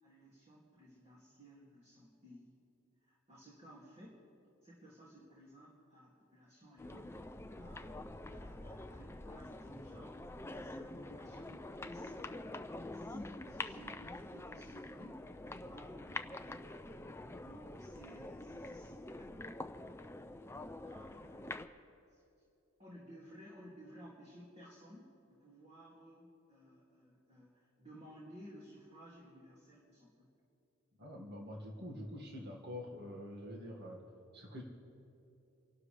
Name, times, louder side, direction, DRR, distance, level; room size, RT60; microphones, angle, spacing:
voice 1, 0.0-2.6 3.0-4.3 4.6-7.3 7.6-7.9 8.3-10.2 10.6-12.4 12.9-16.8 17.4-19.3 20.8-21.5 22.1-22.2 22.8-30.3, equal, 30° right, -6 dB, 2.5 m, -56 dB
sound 1, 6.8-21.7, left 2 dB, 10° left, 0.5 m, -46 dB
voice 2, 31.0-34.0 34.3-34.6, left 1 dB, 50° right, -1 dB, 2.0 m, -46 dB
30.0 x 12.0 x 3.4 m, 2.7 s
head